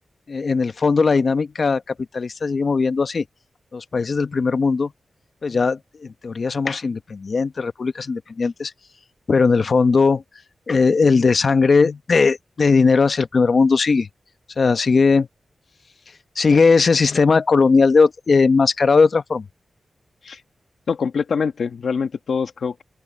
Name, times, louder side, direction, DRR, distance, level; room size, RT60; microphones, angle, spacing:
voice 1, 0.3-1.8 2.1-3.2 3.7-4.9 5.4-8.7 9.3-10.2 10.7-14.1 14.6-15.3 16.4-19.4, left 4 dB, 55° left, 1.0 m, -18 dB
voice 2, 20.9-22.8, left 5 dB, 80° left, 1.5 m, -24 dB
open air
wide cardioid pair, 80°, 0 cm